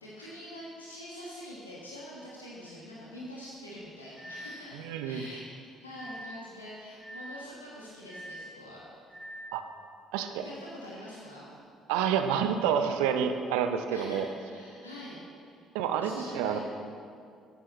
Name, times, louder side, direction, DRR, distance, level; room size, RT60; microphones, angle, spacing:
voice 1, 0.0-5.5 5.8-9.1 10.4-11.5 13.9-15.7 16.0-16.6, equal, 90° left, -6 dB, 1.4 m, -45 dB
sound 1, 2.7-2.8 4.2-4.7 5.9-6.5 7.0-7.5 8.1-8.6 9.1-9.6, equal, 10° right, 1.3 m, -44 dB
voice 2, 4.8-5.2 9.5-9.6 10.1-10.4 11.9-14.3 15.7-16.6, right 8 dB, 70° right, 7 dB, 0.6 m, -28 dB
13.0 x 9.0 x 3.1 m, 2.3 s
figure-of-eight pair, 50°, 0 cm